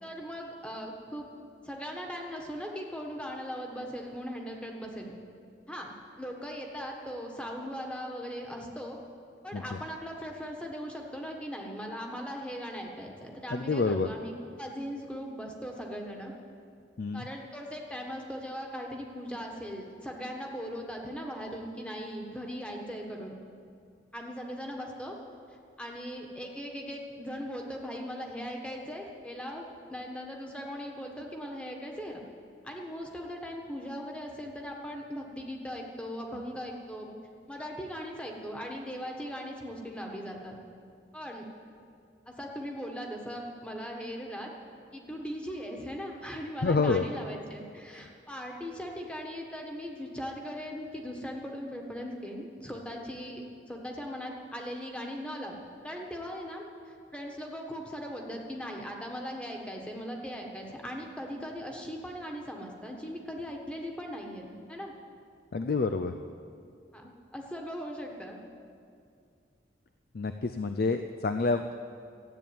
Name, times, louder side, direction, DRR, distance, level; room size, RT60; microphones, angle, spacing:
voice 1, 0.0-1.3 1.6-5.1 5.7-5.9 6.2-9.0 9.4-16.3 17.1-23.3 24.1-25.2 25.8-29.6 29.9-32.2 32.6-37.1 37.5-40.6 41.1-41.5 42.3-44.5 44.9-55.6 55.8-64.9 66.9-68.4, equal, 5° left, 0 dB, 1.4 m, -39 dB
voice 2, 13.5-14.1 17.0-17.3 46.6-47.0 48.0-48.1 65.5-66.1 70.1-71.7, left 3 dB, 55° left, 8 dB, 0.5 m, -28 dB
14.0 x 8.6 x 8.9 m, 2.4 s
head